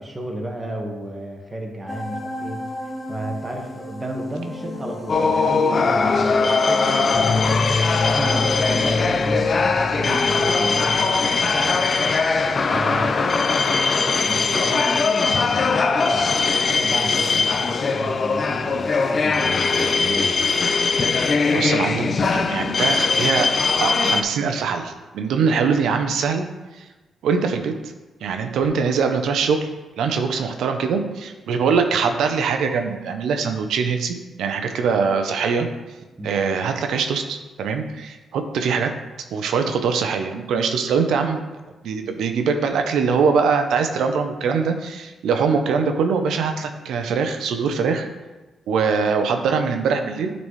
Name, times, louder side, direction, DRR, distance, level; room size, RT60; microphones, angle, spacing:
voice 1, 0.0-12.2 12.7-20.5 36.2-36.3, right 1 dB, 20° right, 0 dB, 1.4 m, -32 dB
sound 1, 1.9-9.6, left 2 dB, 10° left, 1.3 m, -32 dB
sound 2, 5.1-24.2, left 4 dB, 45° left, 0.5 m, -20 dB
voice 2, 21.5-26.5 26.7-26.9 27.2-27.7 28.2-29.7 30.0-35.7 36.2-38.9 39.3-41.4 41.8-48.1 48.7-50.3, right 5 dB, 80° right, 6 dB, 0.7 m, -22 dB
10.5 x 4.1 x 3.2 m, 1.2 s
cardioid pair, 85°, 0 cm